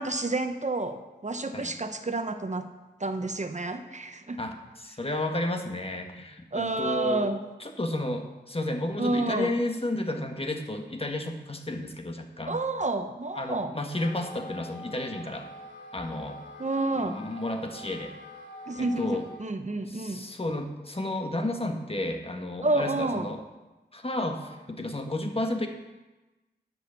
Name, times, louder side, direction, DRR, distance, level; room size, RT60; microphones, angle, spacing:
voice 1, 0.0-2.7 3.0-4.4 6.5-7.4 9.0-9.5 12.5-13.8 16.6-17.3 18.7-20.2 22.6-23.3, right 2 dB, 40° right, 8 dB, 0.9 m, -29 dB
voice 2, 4.4-7.3 7.6-12.6 13.3-15.5 15.9-16.4 17.0-18.1 18.7-19.3 19.9-23.4 23.9-25.7, left 1 dB, 30° left, 4 dB, 1.5 m, -32 dB
Wind instrument woodwind instrument, 13.8-19.4, left 2 dB, 90° left, 2.7 m, -45 dB
11.5 x 6.2 x 6.9 m, 1.1 s
cardioid pair, 40°, 18 cm